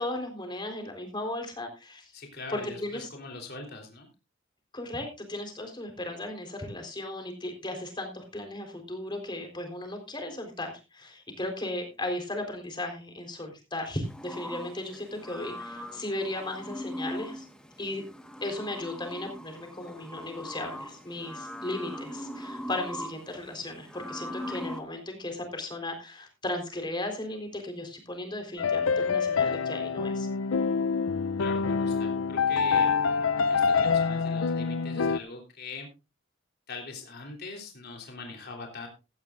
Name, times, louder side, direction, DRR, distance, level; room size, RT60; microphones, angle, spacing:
voice 1, 0.0-2.1 2.5-3.1 4.7-17.5 17.8-18.0 18.4-30.3, left 1 dB, 25° left, 4 dB, 3.9 m, -36 dB
voice 2, 2.1-4.1 31.4-32.9 33.5-35.9 36.7-38.9, left 3 dB, 50° left, 2 dB, 3.5 m, -42 dB
sound 1, 14.0-24.8, left 1 dB, 5° left, 1.4 m, -40 dB
sound 2, 28.6-35.2, left 5 dB, 75° left, 0.5 m, -26 dB
16.5 x 12.5 x 2.5 m, 0.28 s
head